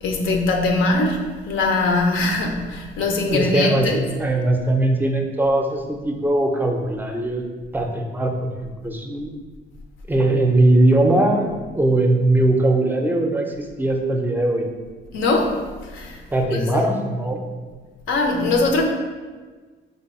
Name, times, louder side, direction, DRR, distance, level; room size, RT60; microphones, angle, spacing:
voice 1, 0.0-4.0 15.1-16.2 16.5-16.6 18.1-18.8, left 2 dB, 80° left, 2 dB, 0.6 m, -21 dB
voice 2, 3.3-9.3 10.1-14.7 16.3-17.4, right 1 dB, 10° right, 3 dB, 0.4 m, -20 dB
3.3 x 2.2 x 4.2 m, 1.4 s
cardioid pair, 90°, 20 cm